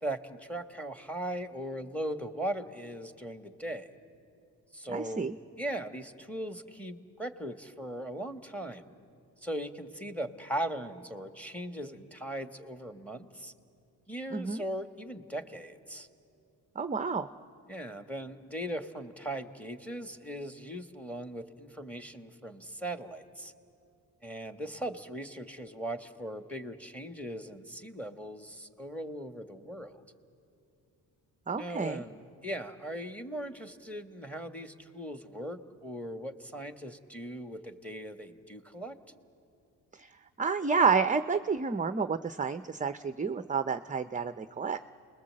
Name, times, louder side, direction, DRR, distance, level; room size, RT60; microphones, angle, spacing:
voice 1, 0.0-3.9 4.7-5.3 5.6-8.9 9.4-13.5 14.1-16.1 17.7-23.5 24.2-29.9 31.6-39.0, right 1 dB, 5° left, 8 dB, 1.7 m, -39 dB
voice 2, 4.9-5.4 14.3-14.6 16.8-17.3 31.5-32.0 39.9-40.1 40.4-44.8, right 5 dB, 20° right, 11 dB, 0.7 m, -30 dB
29.0 x 21.0 x 7.7 m, 2.6 s
cardioid pair, 65°, 41 cm